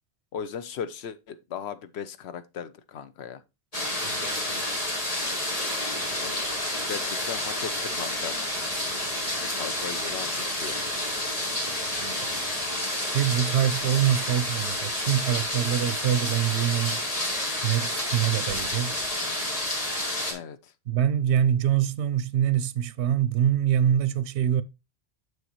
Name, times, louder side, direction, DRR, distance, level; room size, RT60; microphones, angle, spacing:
voice 1, 0.3-3.4 6.2-8.4 9.5-10.9 20.3-20.7, left 7 dB, 75° left, 1.0 m, -37 dB
sound 1, 3.7-20.3, left 1 dB, 35° left, 1.8 m, -29 dB
voice 2, 4.0-4.7 12.0-12.3 13.0-17.0 17.6-19.0 20.9-24.6, right 10 dB, 90° right, 0.9 m, -25 dB
6.5 x 6.4 x 3.0 m
omnidirectional pair, 1.1 m